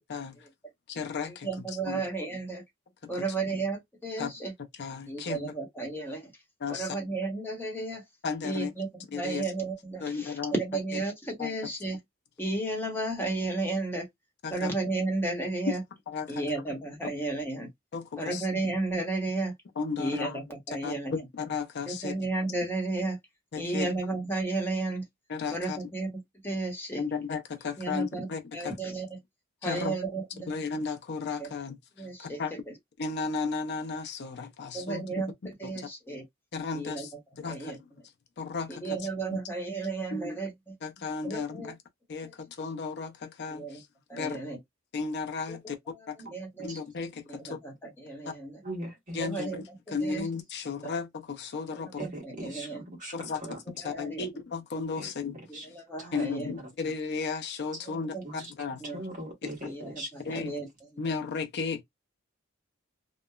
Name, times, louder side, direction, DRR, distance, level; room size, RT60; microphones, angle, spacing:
voice 1, 0.1-0.5 0.9-2.0 3.1-3.2 4.2-4.3 4.7-5.5 6.6-7.0 8.2-8.7 9.1-9.5 10.0-10.5 11.4-11.5 14.4-14.7 15.7-15.8 16.1-16.4 17.9-18.5 19.8-20.4 20.7-22.3 23.5-23.9 25.3-25.8 27.0-28.8 29.6-30.0 30.5-32.5 33.0-35.3 35.6-35.9 36.5-37.8 38.4-39.4 40.1-40.4 40.8-41.8 42.1-43.9 44.2-44.4 44.9-45.8 46.1-46.2 46.6-47.6 48.2-48.3 49.1-52.0 53.1-55.4 56.1-58.8 60.2-60.5 61.0-61.8, left 5 dB, 55° left, 0.5 m, -34 dB
voice 2, 1.4-2.6 3.1-4.5 5.1-6.2 6.7-8.0 8.4-12.0 12.4-14.1 14.5-15.8 16.3-17.7 18.2-19.5 20.0-21.1 21.9-23.2 23.6-25.0 25.5-26.1 26.4-27.0 27.8-28.3 28.5-29.1 29.6-30.5 31.4-31.5 32.0-32.4 34.7-35.3 35.6-36.2 36.7-37.1 37.4-37.8 38.8-40.5 41.2-41.7 42.2-42.3 43.5-43.8 44.1-44.6 45.5-45.6 46.3-46.7 47.3-48.5 49.2-49.6 49.9-50.3 51.7-52.8 53.8-54.3 55.7-56.5 57.9-58.2 58.8-59.0 59.7-60.7, right 2 dB, 10° left, 0.9 m, -33 dB
voice 3, 48.6-49.2 52.0-53.6 55.0-55.1 55.5-55.6 56.0-56.1 56.6-56.7 58.2-58.5 58.9-60.5, right 1 dB, 40° right, 1.3 m, -40 dB
2.9 x 2.1 x 2.3 m
head